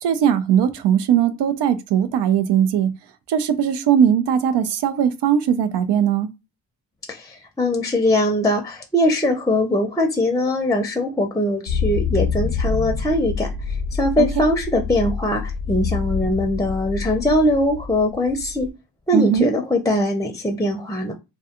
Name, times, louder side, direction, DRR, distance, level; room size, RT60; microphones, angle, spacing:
voice 1, 0.0-2.9 3.3-6.3 14.2-14.3 19.1-19.5, right 9 dB, 85° right, 0.5 m, -19 dB
voice 2, 7.1-18.7 19.1-21.1, left 1 dB, 10° left, 0.5 m, -21 dB
sound 1, 11.7-18.7, left 5 dB, 90° left, 0.6 m, -26 dB
2.3 x 2.2 x 2.8 m
cardioid pair, 65°, 40 cm